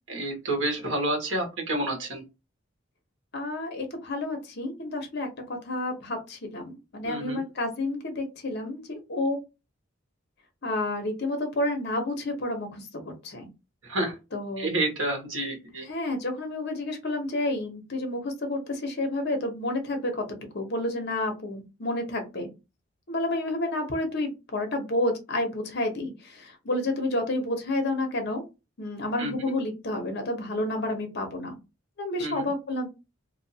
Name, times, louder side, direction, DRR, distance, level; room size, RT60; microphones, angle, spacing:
voice 1, 0.1-2.2 7.0-7.4 13.9-14.1 14.6-15.9 29.2-29.4 32.2-32.5, right 1 dB, 75° right, 1 dB, 1.2 m, -29 dB
voice 2, 3.3-9.4 10.6-13.5 14.3-14.7 15.8-20.2 20.5-22.5 23.1-28.4 28.8-31.6 32.0-32.9, left 1 dB, 60° left, 5 dB, 0.9 m, -30 dB
2.6 x 2.4 x 2.7 m, 0.26 s
head